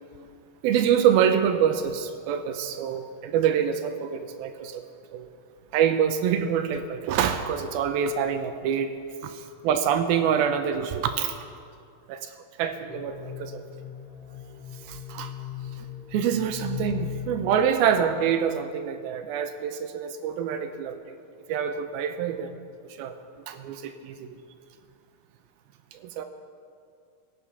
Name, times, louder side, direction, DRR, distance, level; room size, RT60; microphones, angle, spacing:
voice 1, 0.6-4.8 5.1-5.3 5.7-8.9 9.2-11.5 12.1-12.3 12.6-13.6 14.8-15.3 15.8-21.2 21.5-23.1 23.5-24.3 25.9-26.3, right 8 dB, 85° right, 7 dB, 2.6 m, -26 dB
sound 1, 12.9-18.2, left 11 dB, 65° left, 1.7 m, -38 dB
20.0 x 8.5 x 5.9 m, 2.3 s
omnidirectional pair, 4.3 m